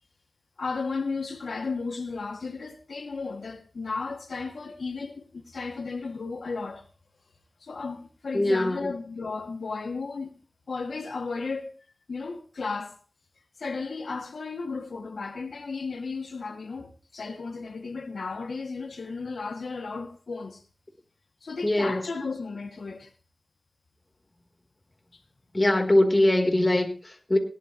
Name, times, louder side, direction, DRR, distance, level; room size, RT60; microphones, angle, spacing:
voice 1, 0.6-6.8 7.6-10.4 10.7-11.7 12.1-13.0 13.6-20.6 21.4-23.1 25.1-25.2, left 4 dB, 80° left, 2.2 m, -34 dB
voice 2, 8.3-8.9 21.6-22.0 25.5-27.4, left 1 dB, 25° left, 3.7 m, -22 dB
20.5 x 18.0 x 3.1 m
wide cardioid pair, 85°, 0 cm